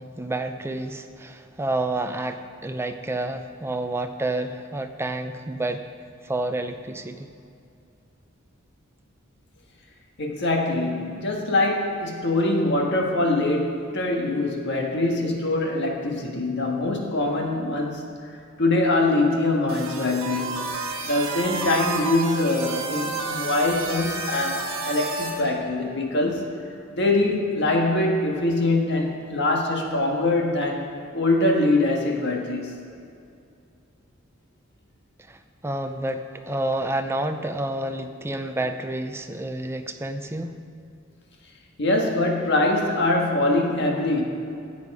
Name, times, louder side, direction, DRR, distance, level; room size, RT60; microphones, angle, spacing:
voice 1, 0.0-5.8 6.2-7.3 35.3-40.6, right 2 dB, 10° right, 7 dB, 0.5 m, -29 dB
voice 2, 10.2-18.0 18.6-20.7 21.0-26.4 26.9-30.9 31.1-32.8 41.8-44.2, left 2 dB, 60° left, 1 dB, 1.6 m, -23 dB
sound 1, 19.7-25.4, right 3 dB, 70° right, 1.6 m, -30 dB
14.0 x 8.2 x 4.9 m, 2.5 s
head